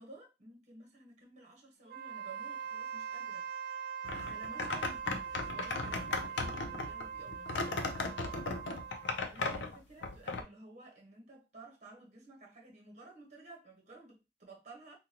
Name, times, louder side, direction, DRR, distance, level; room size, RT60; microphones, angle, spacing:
voice 1, 0.0-7.6 9.3-15.0, right 2 dB, 40° right, 1.1 m, -54 dB
Wind instrument woodwind instrument, 1.8-9.3, right 7 dB, 55° right, 0.3 m, -42 dB
sound 1, 4.0-10.4, left 3 dB, 80° left, 0.5 m, -36 dB
3.7 x 2.3 x 2.8 m
head